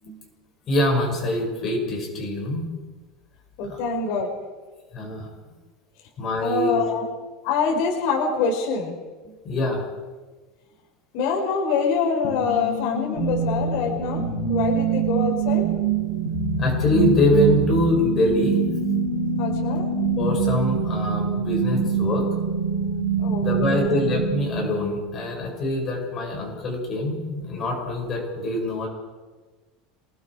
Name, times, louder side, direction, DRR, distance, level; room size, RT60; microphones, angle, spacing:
voice 1, 0.7-2.7 3.7-3.8 4.9-5.3 6.2-6.8 9.4-9.8 16.6-18.6 20.2-22.3 23.4-28.9, left 1 dB, 25° left, 0 dB, 6.2 m, -24 dB
voice 2, 3.6-4.3 5.0-5.1 6.4-7.0 7.4-9.0 9.2-9.3 11.1-15.7 19.4-19.9 23.2-24.0, left 5 dB, 55° left, 0 dB, 4.5 m, -25 dB
sound 1, 12.2-23.0, left 9 dB, 75° left, 1.9 m, -32 dB
sound 2, 13.2-25.1, right 8 dB, 65° right, 3.5 m, -25 dB
27.5 x 20.0 x 4.9 m, 1.3 s
supercardioid pair, 170°, 0 cm